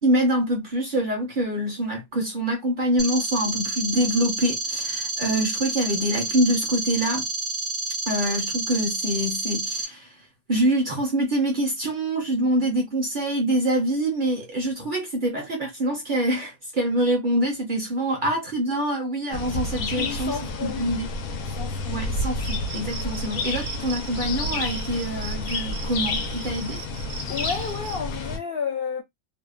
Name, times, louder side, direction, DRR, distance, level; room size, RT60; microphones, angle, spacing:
voice 1, 0.0-7.2 8.1-10.1 10.5-20.4 20.6-21.1 21.9-26.8, right 1 dB, 50° right, 0.7 m, -25 dB
sound 1, 3.0-9.8, right 2 dB, ahead, 0.4 m, -29 dB
sound 2, 19.3-28.4, left 2 dB, 85° left, 1.1 m, -30 dB
voice 2, 20.0-20.9 21.5-22.1 27.3-29.0, left 6 dB, 70° left, 0.5 m, -32 dB
Cricket, 22.4-28.0, right 6 dB, 75° right, 1.0 m, -39 dB
2.7 x 2.1 x 2.3 m
omnidirectional pair, 1.5 m